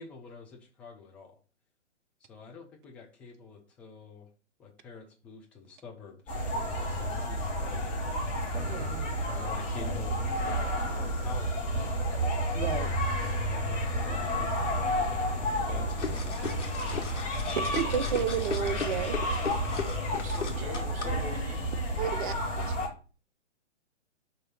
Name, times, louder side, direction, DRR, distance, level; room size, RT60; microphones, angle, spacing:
voice 1, 0.0-1.3 2.2-4.3 4.6-8.1 9.2-12.5 13.5-16.7 17.6-18.2, left 5 dB, 5° left, 0.4 m, -47 dB
sound 1, 6.3-22.9, equal, 20° left, 2.4 m, -31 dB
voice 2, 8.7-9.1 12.5-12.9 17.7-19.2 22.0-22.3 22.7-22.8, right 9 dB, 45° right, 0.7 m, -31 dB
sound 2, 15.9-21.0, left 5 dB, 75° left, 1.6 m, -37 dB
voice 3, 20.0-21.6, right 3 dB, 20° right, 1.3 m, -42 dB
5.5 x 3.9 x 5.5 m
figure-of-eight pair, 130°, 36 cm